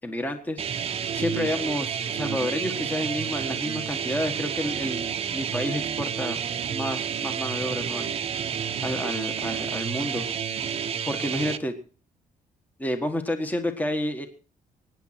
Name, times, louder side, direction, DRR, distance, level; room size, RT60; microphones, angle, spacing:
voice 1, 0.0-0.6 1.1-6.4 6.7-8.1 8.8-10.3 11.0-11.7 12.8-14.3, left 1 dB, 10° left, 6 dB, 1.6 m, -30 dB
sound 1, 0.6-11.6, right 8 dB, 45° right, 0.8 m, -30 dB
22.5 x 10.0 x 4.4 m, 0.39 s
cardioid pair, 145°, 14 cm